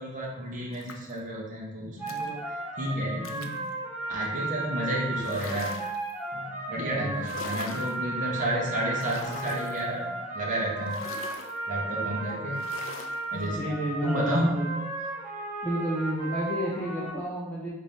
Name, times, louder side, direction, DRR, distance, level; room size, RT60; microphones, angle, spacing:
voice 1, 0.0-3.6 4.1-5.8 6.3-10.1 10.3-11.0 11.7-12.7 13.3-13.7 14.0-14.7, right 1 dB, 40° right, -3 dB, 0.7 m, -31 dB
sound 1, 0.7-1.2 2.1-2.3 3.2-3.6 5.2-6.1 7.2-8.0 9.0-9.9 10.9-11.6 12.5-13.2, left 5 dB, 65° left, 0.4 m, -42 dB
sound 2, 2.0-17.1, right 2 dB, 10° right, 1.1 m, -35 dB
voice 2, 6.7-7.2 13.4-14.7 15.6-17.7, right 1 dB, 10° left, -7 dB, 0.5 m, -31 dB
4.1 x 2.6 x 3.4 m, 0.95 s
head